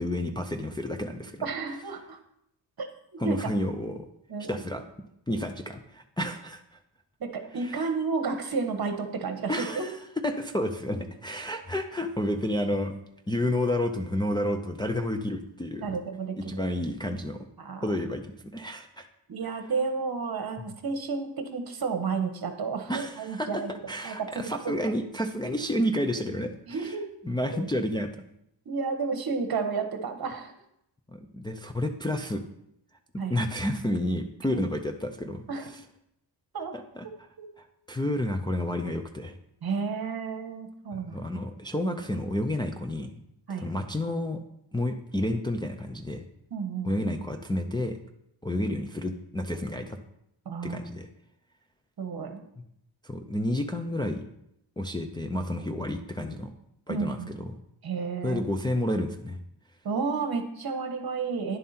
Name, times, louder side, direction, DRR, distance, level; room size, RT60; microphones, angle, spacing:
voice 1, 0.0-1.5 3.2-4.1 4.5-4.8 5.3-6.8 7.6-7.8 9.5-10.0 10.2-12.9 13.3-16.0 16.4-17.5 17.8-19.1 20.6-20.7 22.9-27.0 27.2-28.3 31.1-32.4 33.3-35.4 36.7-37.0 37.6-39.4 41.1-43.1 43.6-44.4 44.7-46.2 46.8-48.0 48.4-50.0 50.6-51.1 53.0-54.2 54.8-56.5 56.9-57.4 58.2-59.4, left 1 dB, 10° left, 3 dB, 0.5 m, -30 dB
voice 2, 1.4-2.2 2.8-2.9 3.2-3.4 4.3-4.6 7.2-9.9 15.8-16.7 17.6-17.8 19.3-23.7 24.0-24.8 26.7-27.1 27.5-27.6 28.6-30.5 33.2-33.4 34.5-34.6 35.5-35.7 36.5-36.7 37.4-37.5 39.6-41.2 43.5-43.6 46.5-46.9 50.4-50.8 52.0-52.4 56.9-57.4 57.8-58.4 59.8-61.6, right 5 dB, 50° right, 6 dB, 1.3 m, -31 dB
10.5 x 7.3 x 4.3 m, 0.78 s
wide cardioid pair, 135°, 45 cm